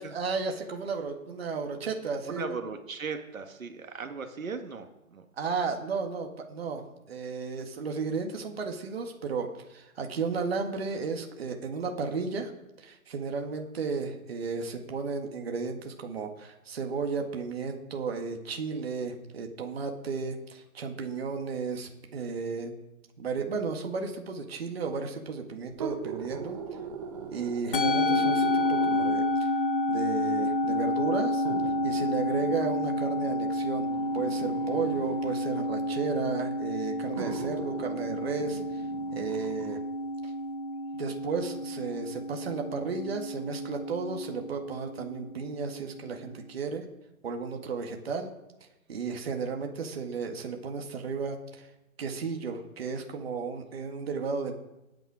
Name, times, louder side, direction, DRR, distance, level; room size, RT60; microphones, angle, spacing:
voice 1, 0.0-2.5 5.4-12.5 12.8-22.8 23.2-26.6 27.3-29.2 29.9-31.4 31.8-33.9 34.1-38.8 39.1-39.8 40.2-40.3 41.0-46.8 47.2-48.3 48.9-51.7 52.0-54.5, right 5 dB, 45° right, 3 dB, 1.9 m, -34 dB
voice 2, 2.3-5.3, right 5 dB, 70° right, 6 dB, 1.8 m, -38 dB
sound 1, 25.7-29.4 30.3-30.4 31.4-35.4 36.4-36.5 37.1-39.8 40.2-40.3, right 5 dB, 25° right, 1.3 m, -41 dB
Musical instrument, 27.7-46.2, left 1 dB, 40° left, 1.0 m, -30 dB
19.0 x 9.4 x 4.9 m, 0.96 s
hypercardioid pair, 165°, 42 cm